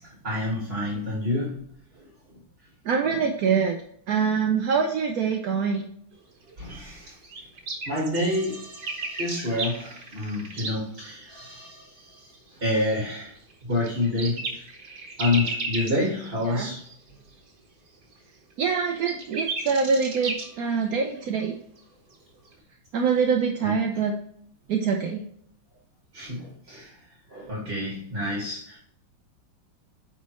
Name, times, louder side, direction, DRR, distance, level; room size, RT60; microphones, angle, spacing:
voice 1, 0.2-1.6 3.0-3.2 6.6-7.1 7.9-12.3 12.6-13.3 13.7-14.4 15.2-16.8 23.6-23.7 26.1-26.9 27.3-28.8, left 1 dB, 25° right, -4 dB, 2.0 m, -28 dB
voice 2, 2.9-3.8 4.1-5.8 16.5-16.7 18.6-21.5 22.9-24.2 24.7-25.2, right 6 dB, 70° right, 2 dB, 0.9 m, -24 dB
sound 1, 6.1-6.2 6.5-6.6 7.0-7.1 7.2-10.8 11.1-11.3 12.0-12.1 12.9-16.9 17.3-17.4 18.7-21.4 21.8-21.9 22.5-22.6, right 3 dB, 50° right, 1.7 m, -34 dB
9.2 x 4.2 x 3.1 m, 0.65 s
omnidirectional pair, 2.3 m